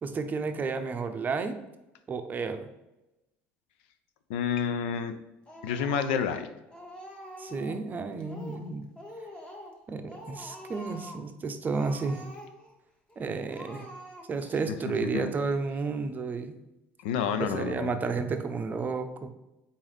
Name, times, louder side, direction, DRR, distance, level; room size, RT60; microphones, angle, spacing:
voice 1, 0.0-1.6 2.1-2.7 7.4-8.8 9.9-12.2 13.2-13.9 14.3-16.5 17.4-19.3, right 4 dB, 30° right, 8 dB, 0.5 m, -32 dB
voice 2, 4.3-5.1 5.6-6.5 15.0-15.3 17.0-18.0, left 7 dB, 90° left, 10 dB, 0.4 m, -29 dB
Speech, 5.5-6.4 6.7-7.8 8.2-8.7 8.9-9.8 10.1-11.3 11.6-12.7 13.1-13.2 13.5-14.5, equal, 15° left, 1.1 m, -45 dB
4.0 x 3.8 x 3.2 m, 0.95 s
supercardioid pair, 90°, 6 cm